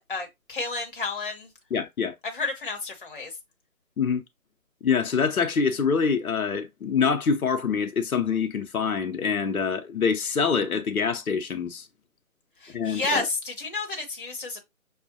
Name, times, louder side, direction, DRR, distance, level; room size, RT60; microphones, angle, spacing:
voice 1, 0.0-1.5 2.2-3.3 12.6-14.6, left 3 dB, 40° left, 0.9 m, -31 dB
voice 2, 1.7-2.1 4.0-4.2 4.8-11.9 12.7-13.3, left 6 dB, 85° left, 0.7 m, -25 dB
5.5 x 2.2 x 2.6 m
figure-of-eight pair, 160°, 42 cm